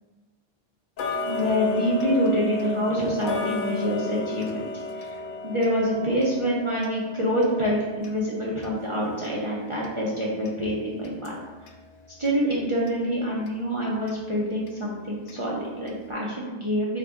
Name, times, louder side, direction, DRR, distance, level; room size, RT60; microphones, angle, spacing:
Tick-tock, 1.0-11.8 12.2-12.3 12.9-13.0 13.5-13.6 14.1-14.2 14.7-14.8 15.3-15.4 15.9-16.0, left 2 dB, 60° left, 0.6 m, -34 dB
voice 1, 1.2-4.6 4.9-5.1 5.4-11.4 12.2-17.0, equal, 35° right, -5 dB, 0.6 m, -26 dB
4.4 x 2.6 x 3.4 m, 1.2 s
omnidirectional pair, 1.1 m